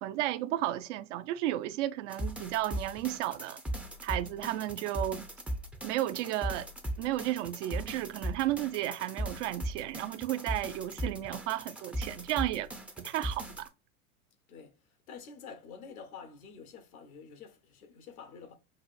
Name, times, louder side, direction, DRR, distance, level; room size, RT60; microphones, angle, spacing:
voice 1, 0.0-3.6 4.0-5.3 5.8-6.7 7.0-12.7 13.0-13.7, right 14 dB, 60° right, 0.5 m, -33 dB
sound 1, 2.1-13.7, right 1 dB, 5° right, 0.4 m, -38 dB
voice 2, 15.1-18.5, left 6 dB, 85° left, 1.0 m, -48 dB
6.0 x 2.5 x 2.4 m
hypercardioid pair, 90°, 42 cm